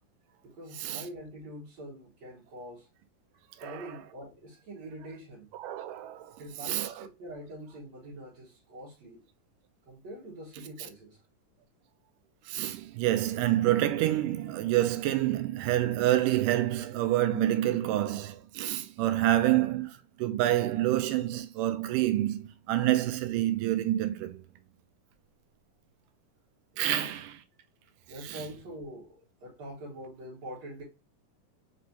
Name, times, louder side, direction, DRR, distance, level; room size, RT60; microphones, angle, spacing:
voice 1, 0.4-2.9 3.6-5.5 6.4-9.2 9.9-11.2 26.7-27.2 28.1-30.8, right 1 dB, 60° right, 2.5 m, -44 dB
voice 2, 3.6-3.9 5.5-6.3 6.7-7.1 12.5-24.4 26.8-27.3 28.2-28.4, right 14 dB, 85° right, 2.1 m, -28 dB
5.3 x 3.2 x 2.7 m
omnidirectional pair, 3.7 m